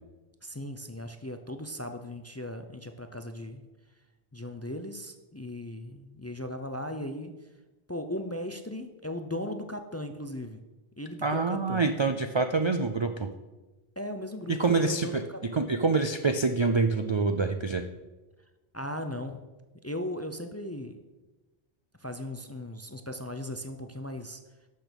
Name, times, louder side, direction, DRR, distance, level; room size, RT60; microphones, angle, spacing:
voice 1, 0.4-3.6 4.3-7.3 7.9-10.6 11.0-11.8 14.0-15.7 18.7-19.5 19.8-21.0 22.0-24.4, left 1 dB, 20° left, 7 dB, 0.5 m, -37 dB
voice 2, 11.2-13.3 14.5-15.2 15.5-17.8, right 4 dB, 40° right, 7 dB, 0.4 m, -26 dB
12.0 x 6.6 x 5.2 m, 1.1 s
omnidirectional pair, 1.1 m